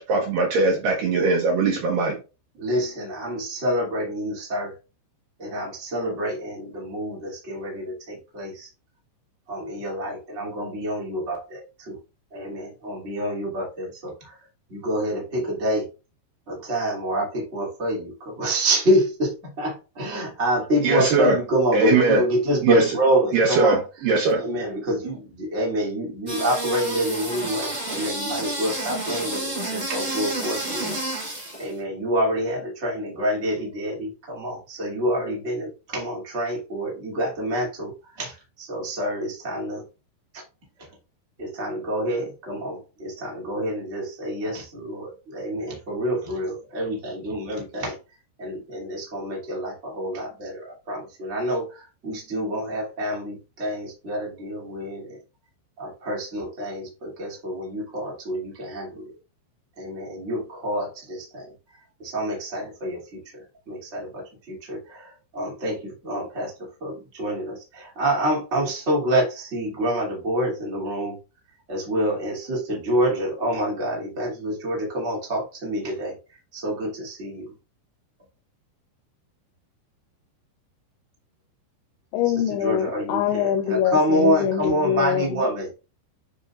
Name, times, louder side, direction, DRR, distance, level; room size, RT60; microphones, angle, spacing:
voice 1, 0.0-2.2 20.8-21.4 21.7-22.2 22.6-23.0 23.3-24.4, right 3 dB, 80° right, 1.9 m, -20 dB
voice 2, 2.6-4.7 5.4-8.7 9.5-12.0 12.3-14.3 14.7-15.9 16.5-23.8 24.4-30.9 31.6-39.8 41.4-48.0 48.4-55.2 55.8-59.1 59.8-61.4 62.0-63.2 63.7-66.5 66.8-71.2 71.7-76.1 76.5-77.5 82.5-85.7, equal, 25° right, 1.7 m, -27 dB
sound 1, 26.3-31.7, right 1 dB, 45° right, 0.5 m, -30 dB
voice 3, 82.1-85.4, left 9 dB, 80° left, 2.3 m, -24 dB
9.7 x 4.1 x 2.5 m
omnidirectional pair, 5.5 m